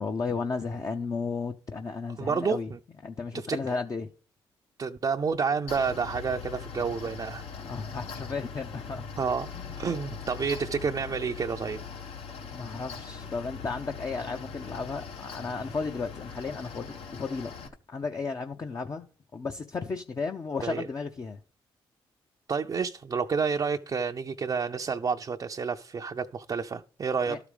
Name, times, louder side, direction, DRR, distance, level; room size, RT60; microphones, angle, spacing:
voice 1, 0.0-2.7 3.0-4.1 7.6-9.0 9.5-9.7 12.5-17.5 17.9-19.0 19.3-21.4 27.3-27.4, left 4 dB, 35° left, 0.7 m, -34 dB
voice 2, 2.2-2.8 3.3-3.6 4.8-7.4 9.2-9.5 9.8-11.8 20.6-20.9 22.5-27.4, right 5 dB, 40° right, 0.5 m, -29 dB
Mechanical fan, 5.7-17.7, left 6 dB, 75° left, 1.3 m, -41 dB
12.0 x 4.9 x 5.0 m
cardioid pair, 70°, 10 cm